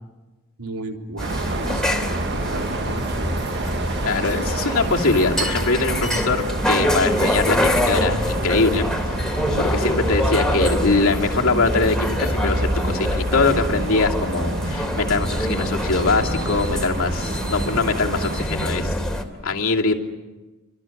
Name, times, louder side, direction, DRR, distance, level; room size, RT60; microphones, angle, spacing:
voice 1, 0.6-3.5 9.4-9.7, right 2 dB, 85° right, 2 dB, 3.7 m, -34 dB
sound 1, 1.2-19.2, left 1 dB, 5° left, 2.9 m, -25 dB
sound 2, 1.2-18.4, right 2 dB, 55° right, 1.5 m, -30 dB
voice 2, 4.0-9.1 9.6-19.0 19.4-19.9, left 3 dB, 70° left, 0 dB, 2.8 m, -22 dB
29.5 x 26.0 x 7.3 m, 1.2 s
head